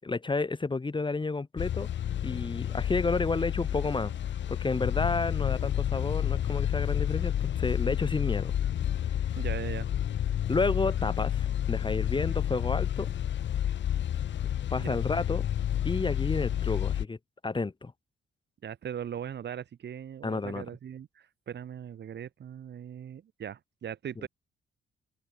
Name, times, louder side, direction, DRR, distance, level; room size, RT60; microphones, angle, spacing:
voice 1, 0.0-1.9 2.2-4.1 4.5-8.5 10.5-13.1 14.7-15.4 15.8-17.2 17.4-17.9 20.2-20.6, left 3 dB, 25° left, 5.8 m, -31 dB
sound 1, 1.6-17.0, left 10 dB, 65° left, 3.4 m, -30 dB
voice 2, 9.3-9.9 14.8-15.0 18.6-24.3, right 9 dB, 60° right, 5.3 m, -39 dB
open air
cardioid pair, 90°, 20 cm